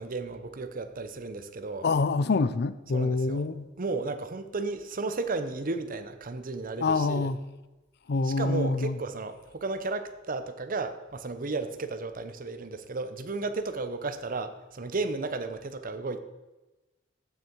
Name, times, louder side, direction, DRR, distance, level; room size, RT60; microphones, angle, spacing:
voice 1, 0.0-1.9 2.9-3.5 3.8-7.3 8.2-16.2, right 3 dB, 45° right, 0.8 m, -34 dB
voice 2, 1.8-3.7 6.8-7.4 8.1-9.0, left 3 dB, 60° left, 0.5 m, -26 dB
15.5 x 6.5 x 4.6 m
head